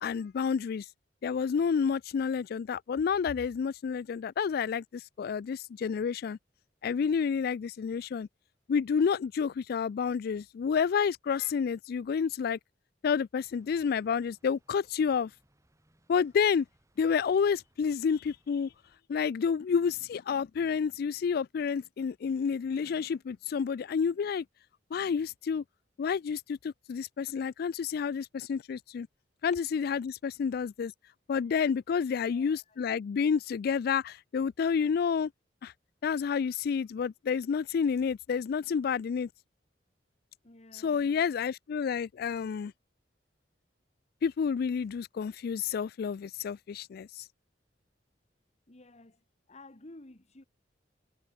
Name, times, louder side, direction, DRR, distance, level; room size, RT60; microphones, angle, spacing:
voice 1, 0.0-0.8 1.2-6.4 6.8-8.3 8.7-12.6 13.0-15.3 16.1-16.7 17.0-18.7 19.1-24.4 24.9-25.6 26.0-29.1 29.4-30.9 31.3-35.3 35.6-35.7 36.0-39.3 40.7-42.7 44.2-47.2, left 6 dB, 60° left, 0.3 m, -29 dB
sound 1, 13.4-19.0, right 1 dB, 20° right, 5.7 m, -70 dB
voice 2, 32.1-32.8 40.4-41.2 48.7-49.2 49.5-50.4, left 2 dB, 40° left, 1.6 m, -53 dB
head